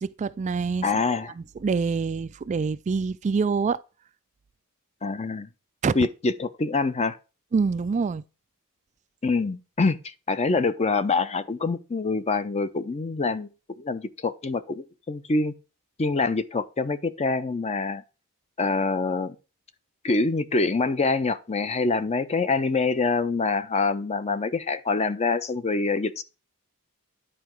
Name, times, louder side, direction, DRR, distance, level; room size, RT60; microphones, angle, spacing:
voice 1, 0.0-1.0 1.4-3.8 5.8-5.9 7.5-8.2, right 5 dB, 30° right, 0.3 m, -26 dB
voice 2, 0.8-1.3 5.0-5.5 5.9-7.2 9.2-10.0 10.3-13.5 13.8-15.5 16.0-18.0 18.6-19.4 20.0-26.2, left 3 dB, 30° left, 0.6 m, -25 dB
10.0 x 4.7 x 4.5 m
head